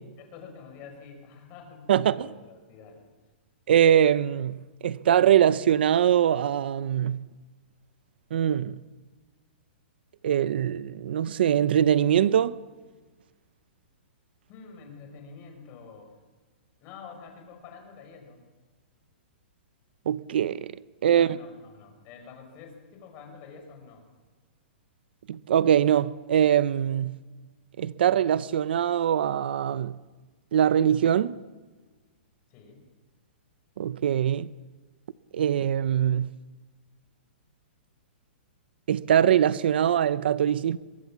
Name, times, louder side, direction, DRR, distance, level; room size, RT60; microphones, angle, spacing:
voice 1, 0.2-3.1 14.5-16.1 16.8-18.4 21.1-24.0 32.5-32.8, left 5 dB, 25° left, 5.4 m, -47 dB
voice 2, 1.9-2.3 3.7-7.2 8.3-8.8 10.2-12.6 20.1-20.7 21.0-21.3 25.3-27.2 27.8-30.0 30.5-31.4 33.8-34.5 35.3-36.4 38.9-40.8, right 10 dB, 60° right, 0.7 m, -22 dB
23.5 x 22.5 x 7.4 m
hypercardioid pair, 165°, 6 cm